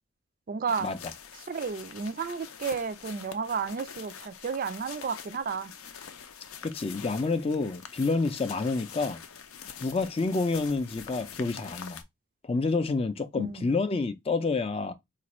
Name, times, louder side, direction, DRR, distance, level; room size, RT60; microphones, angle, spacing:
voice 1, 0.5-0.9 1.5-5.7 13.3-13.7, right 5 dB, 40° right, 0.3 m, -32 dB
Paper Crinkle, 0.7-12.0, left 7 dB, 85° left, 0.6 m, -45 dB
voice 2, 6.6-9.2 9.8-12.0 12.4-14.9, left 3 dB, 25° left, 0.4 m, -28 dB
4.2 x 2.5 x 2.9 m
head